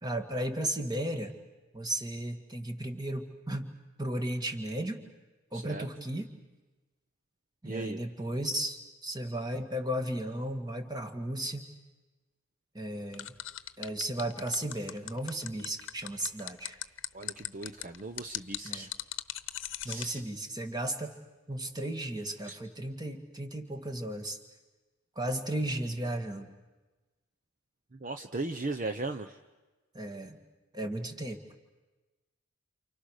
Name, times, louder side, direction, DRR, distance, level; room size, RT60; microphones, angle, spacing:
voice 1, 0.0-1.4 1.7-3.7 4.0-5.0 5.5-6.3 7.6-11.7 12.7-13.3 13.8-16.8 18.6-18.9 19.8-21.1 21.5-24.4 25.2-26.5 29.9-30.4 30.7-31.4, right 1 dB, 20° right, 6 dB, 2.1 m, -35 dB
voice 2, 5.5-5.9 7.6-8.0 17.1-18.9 19.8-20.2 22.4-22.6 28.0-29.4, right 2 dB, 35° right, 8 dB, 0.9 m, -37 dB
sound 1, 13.1-20.1, left 13 dB, 60° left, 1.0 m, -38 dB
29.5 x 28.5 x 6.6 m, 1.2 s
head